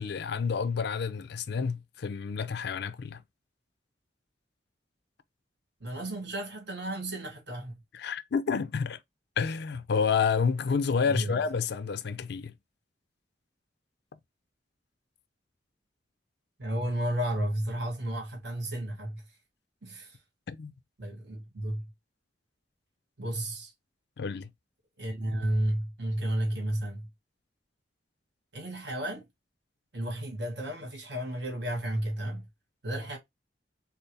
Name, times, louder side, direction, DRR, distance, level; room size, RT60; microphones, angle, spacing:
voice 1, 0.0-3.2 7.9-9.0 9.4-12.5 20.5-20.7 24.2-24.5, left 5 dB, 65° left, 0.5 m, -29 dB
voice 2, 5.8-7.8 11.1-11.4 16.6-19.2 19.8-20.2 21.0-21.9 23.2-23.7 25.0-27.1 28.5-29.2 29.9-32.5 32.8-33.2, right 1 dB, 65° right, 1.7 m, -32 dB
4.5 x 2.0 x 3.2 m
head